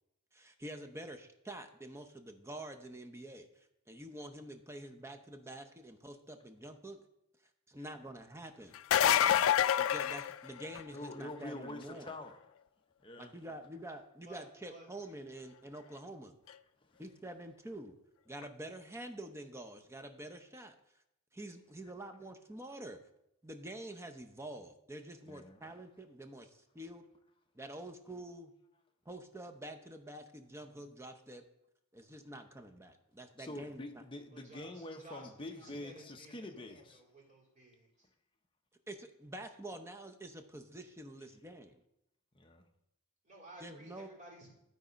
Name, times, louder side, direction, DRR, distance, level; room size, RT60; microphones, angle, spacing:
voice 1, 0.3-7.0 7.7-8.8 9.8-12.1 13.2-16.3 17.0-17.9 18.3-20.8 21.3-23.0 23.4-27.0 27.5-28.5 29.1-31.4 31.9-34.0 38.9-41.8 43.6-44.1, right 1 dB, 10° right, 0.7 m, -47 dB
sound 1, 8.7-11.0 16.5-16.6 18.4-18.5, left 10 dB, 60° left, 0.3 m, -27 dB
voice 2, 9.0-9.5 10.9-12.4 13.0-13.3 16.9-17.0 25.2-25.6 33.4-37.0 42.3-42.7, left 1 dB, 25° left, 0.8 m, -46 dB
voice 3, 34.3-34.7 35.0-35.2 35.6-36.3 37.1-37.9 43.3-43.9 44.2-44.4, right 1 dB, 35° right, 2.9 m, -53 dB
12.5 x 4.1 x 5.1 m
head